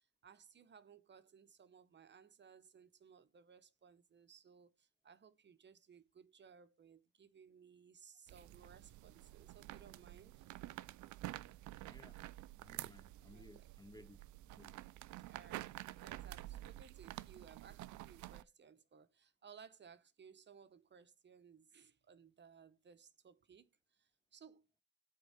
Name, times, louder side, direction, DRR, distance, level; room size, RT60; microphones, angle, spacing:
voice 1, 0.0-10.4 13.3-13.7 15.2-24.7, right 6 dB, 35° right, 0.7 m, -61 dB
sound 1, 8.3-18.4, right 16 dB, 70° right, 0.4 m, -50 dB
voice 2, 11.8-12.2 12.6-14.2 14.5-14.7, left 2 dB, 15° left, 0.5 m, -59 dB
7.8 x 3.6 x 5.5 m
cardioid pair, 90°, 30 cm